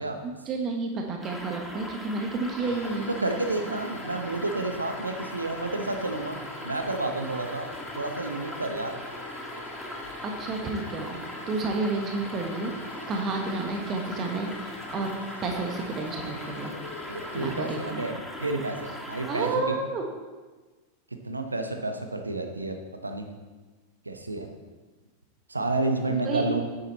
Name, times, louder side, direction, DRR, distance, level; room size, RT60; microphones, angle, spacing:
voice 1, 0.2-3.1 10.2-11.2 11.5-12.7 13.1-15.1 15.4-16.7 17.3-18.0 19.3-20.0 26.1-26.5, right 3 dB, 30° right, 2 dB, 1.4 m, -30 dB
sound 1, 1.2-19.5, equal, ahead, 1.3 m, -40 dB
sound 2, 2.3-18.5, left 5 dB, 65° left, 0.9 m, -45 dB
voice 2, 3.1-7.7 7.9-9.0 17.1-19.8 21.2-22.8 23.0-23.3 24.0-24.5 25.5-26.6, right 2 dB, 80° right, 5 dB, 1.1 m, -30 dB
10.0 x 8.2 x 4.2 m, 1.3 s
figure-of-eight pair, 90°, 0 cm